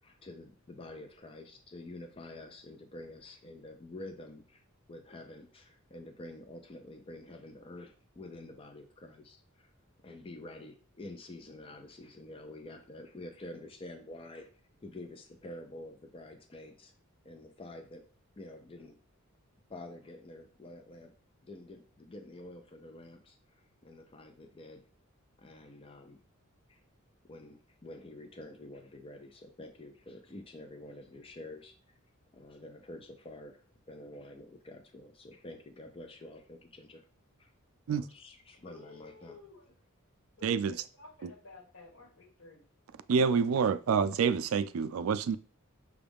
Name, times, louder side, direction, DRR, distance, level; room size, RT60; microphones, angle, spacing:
voice 1, 0.0-4.6 4.9-9.7 10.0-14.5 14.8-16.9 17.2-18.0 18.4-19.0 19.7-21.1 21.4-24.8 25.4-26.2 26.7-26.8 27.3-31.7 32.3-33.6 33.9-37.0 37.4-37.5 37.9-39.4, left 2 dB, 25° left, 0.5 m, -48 dB
voice 2, 38.5-39.7 40.4-42.6, left 3 dB, 75° left, 1.7 m, -54 dB
voice 3, 40.4-40.8 41.2-41.3 43.1-45.4, right 6 dB, 75° right, 0.4 m, -27 dB
6.1 x 2.3 x 3.4 m
head